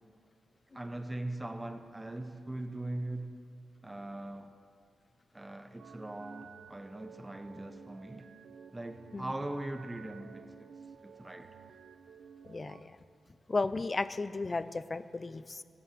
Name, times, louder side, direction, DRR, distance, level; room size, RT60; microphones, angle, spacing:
voice 1, 0.7-3.3 3.8-4.6 5.3-8.3 8.7-10.7 11.0-11.6, right 1 dB, 15° right, 0.7 m, -40 dB
sound 1, 5.8-12.8, right 6 dB, 80° right, 0.8 m, -53 dB
voice 2, 12.5-12.9 13.5-15.6, left 3 dB, 35° left, 0.5 m, -34 dB
15.5 x 10.0 x 6.7 m
cardioid pair, 85°, 0 cm